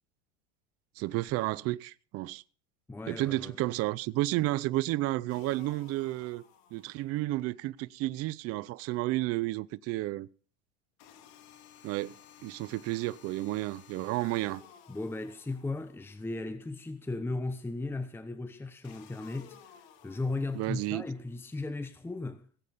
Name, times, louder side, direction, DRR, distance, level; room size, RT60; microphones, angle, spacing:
voice 1, 1.0-2.4 3.1-6.4 6.7-10.3 11.8-12.2 12.4-14.6 20.5-21.0, right 18 dB, 45° right, 0.6 m, -31 dB
voice 2, 2.9-3.6 14.9-19.6 20.0-22.4, left 2 dB, 5° left, 0.9 m, -36 dB
sound 1, 5.3-7.3 11.0-16.3 18.8-21.2, left 9 dB, 65° left, 2.6 m, -56 dB
18.0 x 8.5 x 5.5 m
supercardioid pair, 120°, 34 cm